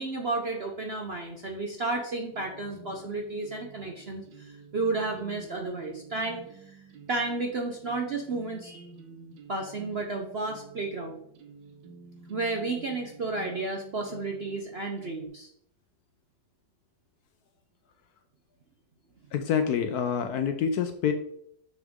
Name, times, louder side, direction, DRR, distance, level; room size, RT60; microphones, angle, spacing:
voice 1, 0.0-6.8 7.1-8.9 9.5-11.2 12.3-15.5, right 3 dB, 55° right, 2 dB, 0.7 m, -32 dB
sound 1, 2.3-15.3, right 4 dB, 75° right, 1.5 m, -50 dB
voice 2, 19.3-21.1, left 7 dB, 70° left, 8 dB, 1.0 m, -27 dB
7.2 x 6.3 x 3.6 m, 0.70 s
omnidirectional pair, 2.0 m